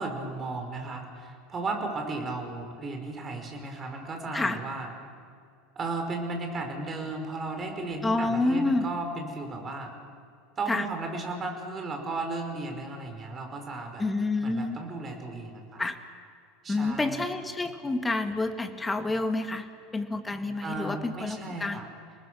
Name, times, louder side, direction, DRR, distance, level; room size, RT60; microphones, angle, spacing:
voice 1, 0.0-4.9 5.8-9.9 10.6-14.0 14.4-15.8 16.6-17.2 20.6-21.9, right 3 dB, 30° right, 4 dB, 5.2 m, -35 dB
voice 2, 8.0-8.9 10.7-10.9 14.0-14.8 15.8-16.0 16.7-19.7 19.9-21.8, left 2 dB, 15° left, 7 dB, 1.9 m, -28 dB
29.0 x 19.5 x 6.3 m, 2.1 s
figure-of-eight pair, 75°, 0 cm